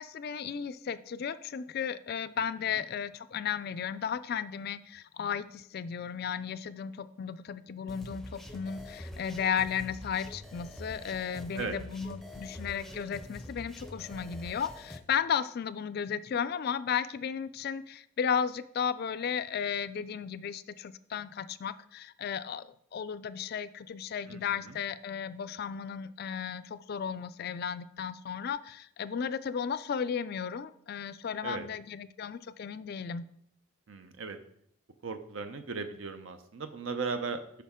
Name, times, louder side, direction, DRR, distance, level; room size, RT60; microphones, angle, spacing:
voice 1, 0.0-33.2, left 7 dB, 50° left, 14 dB, 0.3 m, -34 dB
sound 1, 7.9-15.0, left 1 dB, ahead, 0.6 m, -45 dB
voice 2, 24.3-24.8 31.4-31.7 33.9-34.4 35.0-37.4, right 4 dB, 70° right, 8 dB, 0.6 m, -37 dB
8.3 x 5.8 x 3.6 m, 0.67 s
head